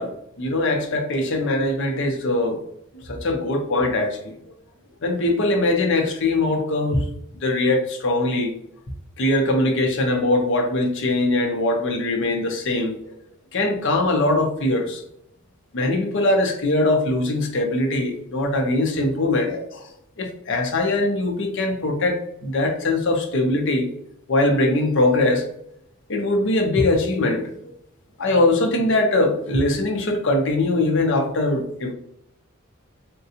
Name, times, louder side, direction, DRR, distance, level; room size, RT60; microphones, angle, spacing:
voice 1, 0.0-2.6 3.0-4.3 5.0-7.1 7.4-8.5 9.2-13.1 13.5-15.0 15.7-19.9 20.2-23.9 24.3-25.5 26.1-27.4 28.2-31.9, left 2 dB, 60° left, 2 dB, 0.6 m, -21 dB
3.6 x 2.2 x 2.8 m, 0.74 s
head